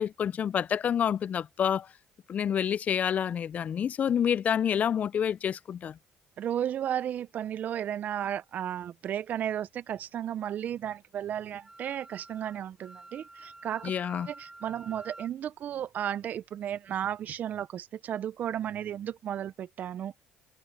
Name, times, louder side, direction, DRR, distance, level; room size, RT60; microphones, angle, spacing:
voice 1, 0.0-1.9 2.3-6.0 13.8-14.3, left 8 dB, 45° left, 0.4 m, -28 dB
voice 2, 6.4-13.9 14.3-20.1, right 10 dB, 55° right, 0.7 m, -34 dB
Wind instrument woodwind instrument, 11.6-15.3, right 2 dB, 15° right, 1.9 m, -49 dB
supercardioid pair, 70°, 3 cm